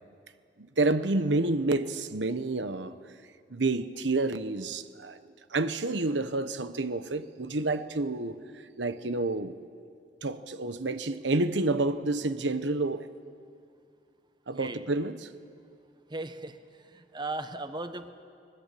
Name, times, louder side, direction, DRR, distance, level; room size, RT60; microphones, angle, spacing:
voice 1, 0.6-2.9 3.5-5.2 5.5-8.4 8.8-9.6 10.2-13.1 14.5-15.3, right 2 dB, 85° right, 1.1 m, -29 dB
voice 2, 16.1-16.6 16.9-18.1, right 2 dB, 25° right, 1.2 m, -36 dB
25.0 x 21.0 x 8.5 m
head